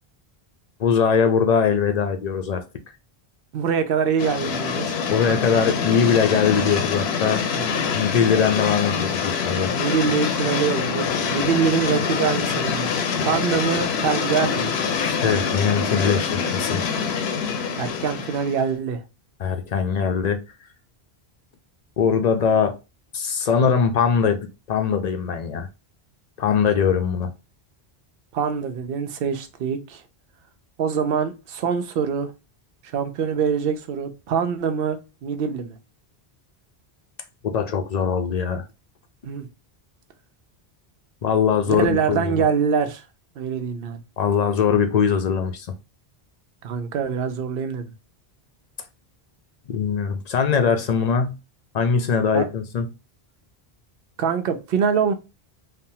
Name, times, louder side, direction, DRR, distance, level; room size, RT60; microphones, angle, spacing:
voice 1, 0.8-2.6 5.1-7.4 7.9-9.7 15.0-16.9 19.4-20.4 22.0-22.8 23.1-25.7 26.4-27.3 37.4-38.6 41.2-42.4 44.2-45.8 49.7-51.4 51.7-52.9, left 6 dB, 55° left, 0.5 m, -21 dB
voice 2, 3.5-5.0 7.5-7.6 9.7-12.9 13.2-14.7 17.8-19.0 28.3-30.0 30.8-32.3 32.9-35.8 39.2-39.5 41.7-43.0 43.4-44.0 46.6-47.9 52.3-52.5 54.2-55.1, right 6 dB, 70° right, 0.7 m, -24 dB
sound 1, 4.2-18.7, left 6 dB, 80° left, 0.8 m, -25 dB
3.3 x 2.0 x 2.7 m
omnidirectional pair, 1.1 m